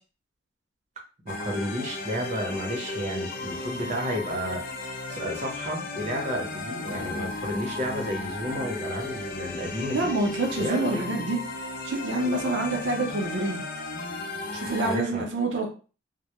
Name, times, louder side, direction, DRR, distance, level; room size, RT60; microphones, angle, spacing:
voice 1, 1.2-4.6 4.9-10.1 10.6-11.1 14.8-15.2, equal, 40° right, 0 dB, 0.7 m, -32 dB
sound 1, 1.3-15.0, left 2 dB, 50° left, 0.4 m, -35 dB
voice 2, 9.9-11.4 11.8-13.6 14.5-15.7, right 2 dB, 75° right, 2 dB, 0.5 m, -27 dB
2.1 x 2.0 x 2.8 m, 0.35 s
head